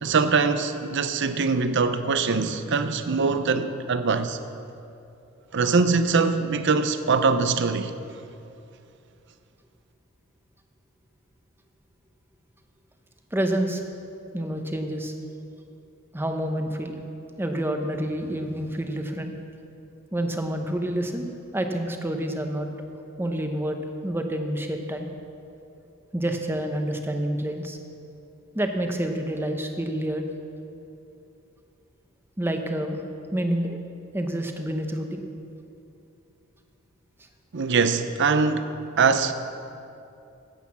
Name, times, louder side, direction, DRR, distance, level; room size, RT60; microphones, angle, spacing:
voice 1, 0.0-4.4 5.5-7.9 37.5-39.3, right 4 dB, 60° right, 0.6 m, -23 dB
voice 2, 13.3-13.8 14.3-15.1 16.1-17.0 17.4-19.3 20.1-21.3 21.5-22.7 23.2-23.8 24.0-25.1 26.1-27.8 28.5-30.3 32.4-33.0 33.3-35.2, right 1 dB, 10° right, 0.9 m, -28 dB
10.0 x 8.3 x 7.2 m
head